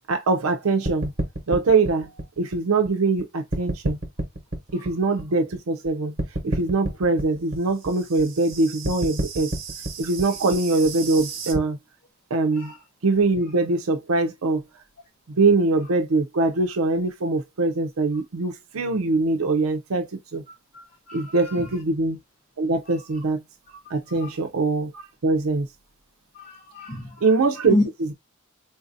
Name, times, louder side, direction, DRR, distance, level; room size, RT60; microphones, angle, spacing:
voice 1, 0.1-1.1 1.5-2.1 2.4-4.0 4.7-6.2 6.4-9.5 10.0-11.8 12.3-12.7 13.0-14.6 15.3-20.4 21.1-22.2 22.6-23.4 23.9-25.7 27.2-28.1, right 3 dB, 85° right, 0.6 m, -23 dB
sound 1, 0.9-3.2 3.5-5.9 6.2-11.6, right 2 dB, 45° right, 1.1 m, -30 dB
voice 2, 20.7-21.5 24.1-24.3 26.3-27.1 27.7-27.9, left 1 dB, 40° left, 1.0 m, -28 dB
3.9 x 2.6 x 2.5 m
head